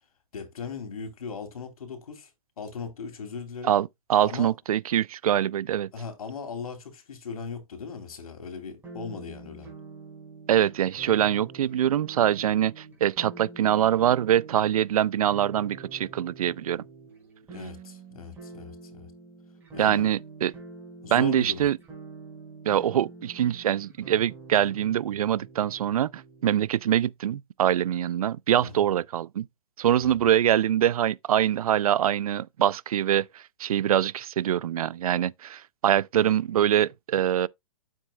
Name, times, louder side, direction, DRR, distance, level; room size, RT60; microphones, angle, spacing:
voice 1, 0.3-2.3 2.6-3.8 4.2-4.5 5.9-9.7 17.5-19.1 19.7-20.1 21.0-21.6 28.6-28.8 30.0-30.1, left 5 dB, 80° left, 3.1 m, -38 dB
voice 2, 3.6-5.9 10.5-16.8 19.8-20.5 21.1-21.8 22.7-29.5 29.8-37.5, right 10 dB, 80° right, 0.5 m, -24 dB
sound 1, 8.8-26.6, right 4 dB, 10° right, 5.0 m, -46 dB
9.3 x 7.4 x 2.2 m
hypercardioid pair, 150°, 18 cm